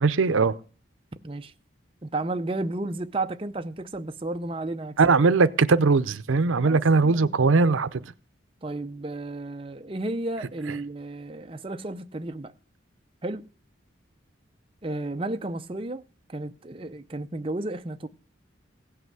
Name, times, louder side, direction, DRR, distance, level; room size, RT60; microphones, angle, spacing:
voice 1, 0.0-0.5 5.0-8.0, right 4 dB, 85° right, 0.6 m, -20 dB
voice 2, 2.0-5.0 6.5-7.4 7.6-7.7 8.6-12.5 13.2-13.5 14.8-18.1, right 2 dB, 25° right, 0.6 m, -33 dB
16.5 x 5.7 x 7.8 m
head